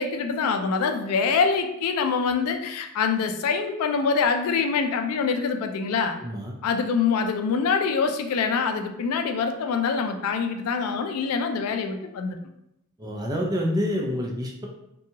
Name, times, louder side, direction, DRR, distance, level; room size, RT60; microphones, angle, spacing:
voice 1, 0.0-6.2 6.6-12.4, left 5 dB, 90° left, 6 dB, 0.3 m, -25 dB
voice 2, 6.2-6.5 13.0-14.7, equal, 15° right, -1 dB, 0.4 m, -27 dB
2.6 x 2.3 x 2.7 m, 0.83 s
head